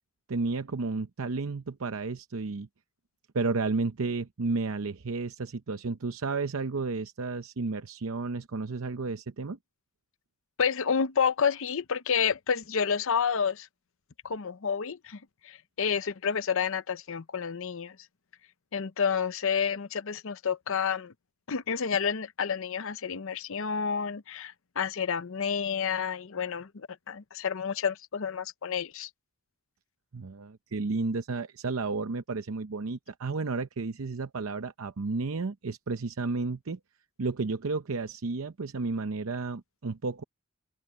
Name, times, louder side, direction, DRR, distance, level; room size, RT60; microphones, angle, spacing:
voice 1, 0.3-2.7 3.3-9.6 30.1-36.8 37.2-40.2, right 3 dB, 70° right, 0.7 m, -32 dB
voice 2, 10.6-13.7 14.2-15.2 15.4-18.0 18.7-21.1 21.5-29.1, left 6 dB, 70° left, 0.7 m, -29 dB
head